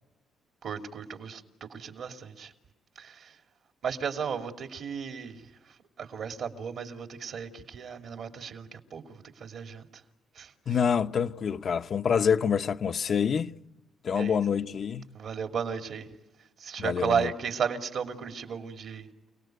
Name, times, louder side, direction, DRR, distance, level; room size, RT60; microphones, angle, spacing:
voice 1, 0.6-2.5 3.0-3.3 3.8-5.4 6.0-9.9 10.4-10.5 14.1-14.4 15.1-16.1 16.6-19.1, right 6 dB, 65° right, 2.9 m, -34 dB
voice 2, 10.7-13.5 14.0-15.1 16.8-17.3, left 7 dB, 55° left, 0.8 m, -26 dB
29.0 x 19.0 x 9.2 m
cardioid pair, 90°, 0 cm